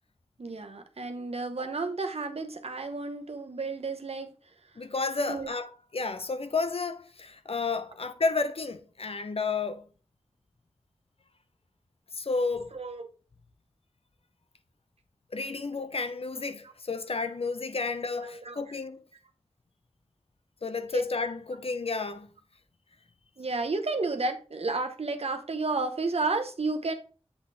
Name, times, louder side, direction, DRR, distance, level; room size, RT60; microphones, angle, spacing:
voice 1, 0.4-4.3 5.3-5.5 12.7-13.1 18.2-18.6 20.9-21.0 23.4-26.9, right 3 dB, 70° right, 0.9 m, -32 dB
voice 2, 4.8-9.8 12.1-12.7 15.3-19.0 20.6-22.3, left 4 dB, 65° left, 0.7 m, -31 dB
8.0 x 4.1 x 3.4 m
wide cardioid pair, 65°, 11 cm